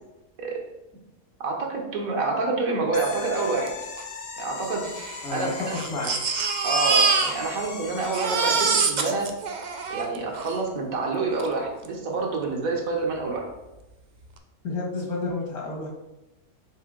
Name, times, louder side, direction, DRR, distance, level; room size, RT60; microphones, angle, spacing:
voice 1, 1.4-3.7 4.4-4.9 5.3-5.8 6.6-9.3 9.9-13.5, right 3 dB, 65° right, 0 dB, 1.5 m, -27 dB
sound 1, 2.9-8.5, left 4 dB, 50° left, 0.8 m, -38 dB
Crying sobbing, 3.7-3.8 4.0-4.1 4.8-7.7 8.0-10.6 11.4-11.5 11.8-11.9, right 5 dB, 90° right, 0.4 m, -25 dB
voice 2, 5.2-6.1 14.6-15.9, left 3 dB, 75° left, -1 dB, 2.0 m, -30 dB
6.7 x 4.1 x 3.7 m, 0.99 s
omnidirectional pair, 1.6 m